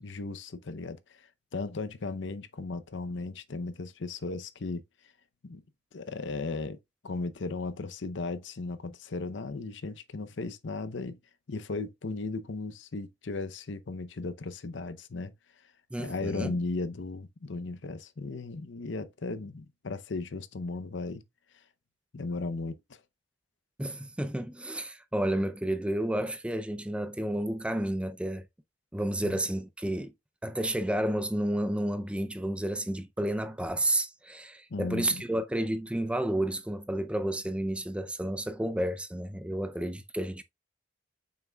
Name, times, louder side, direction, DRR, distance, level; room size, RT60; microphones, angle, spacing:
voice 1, 0.0-4.8 5.4-5.6 5.9-6.8 7.0-11.2 11.5-15.3 16.0-21.2 22.1-23.0 29.2-29.4 34.7-35.2, left 3 dB, 70° left, 0.6 m, -36 dB
voice 2, 15.9-16.5 23.8-28.5 28.9-30.1 30.4-40.4, right 1 dB, 5° right, 0.4 m, -31 dB
7.2 x 5.8 x 2.3 m
head